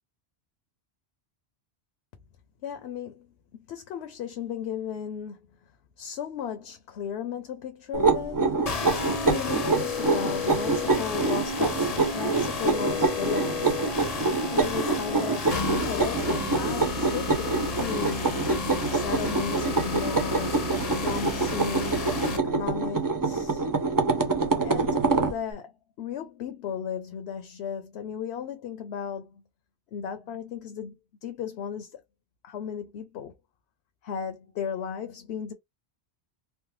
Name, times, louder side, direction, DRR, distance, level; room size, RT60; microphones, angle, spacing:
voice 1, 2.6-5.5 6.0-8.6 9.0-13.9 14.5-15.6 15.9-18.5 18.9-20.7 21.0-22.1 22.4-23.6 24.6-29.4 29.9-31.0 31.2-32.0 32.4-33.3 34.0-35.5, left 8 dB, 75° left, 0.8 m, -35 dB
sound 1, 7.9-25.4, right 3 dB, 35° right, 0.3 m, -26 dB
sound 2, 8.7-22.4, left 4 dB, 45° left, 0.6 m, -32 dB
3.2 x 2.0 x 3.0 m
omnidirectional pair, 1.1 m